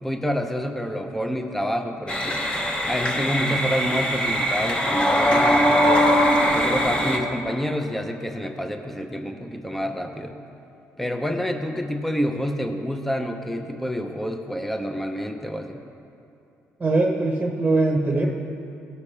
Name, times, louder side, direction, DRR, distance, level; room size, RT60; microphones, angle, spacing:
voice 1, 0.0-2.4 2.9-6.1 6.5-10.4 11.0-15.8, equal, 5° left, 5 dB, 0.7 m, -28 dB
sound 1, 2.1-7.2, equal, 20° left, 1.2 m, -21 dB
voice 2, 16.8-18.3, right 2 dB, 25° right, 1 dB, 1.0 m, -21 dB
18.0 x 6.9 x 3.3 m, 2.7 s
cardioid pair, 95°, 5 cm